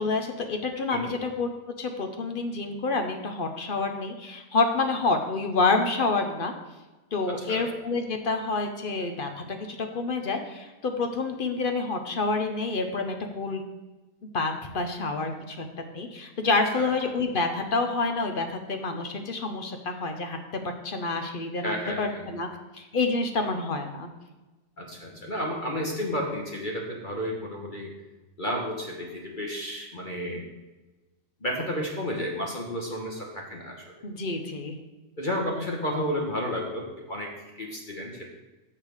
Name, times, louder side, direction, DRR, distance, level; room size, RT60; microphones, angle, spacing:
voice 1, 0.0-1.5 1.8-6.5 7.1-13.6 14.2-15.6 15.9-20.4 20.8-22.5 22.7-24.1 34.0-34.8, left 3 dB, 50° left, 5 dB, 0.6 m, -28 dB
voice 2, 21.6-22.3 24.8-27.9 28.4-30.4 31.4-33.9 35.2-38.2, equal, 30° left, -1 dB, 1.2 m, -32 dB
6.7 x 5.8 x 6.4 m, 1.1 s
omnidirectional pair, 1.9 m